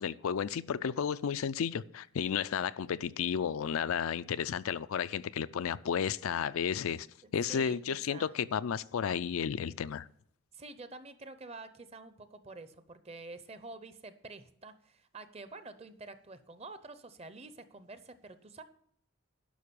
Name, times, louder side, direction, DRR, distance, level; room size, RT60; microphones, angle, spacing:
voice 1, 0.0-7.1 7.3-10.1, left 7 dB, 75° left, 0.4 m, -33 dB
voice 2, 7.2-8.3 10.5-18.6, right 3 dB, 30° right, 0.7 m, -48 dB
11.0 x 5.9 x 6.9 m
head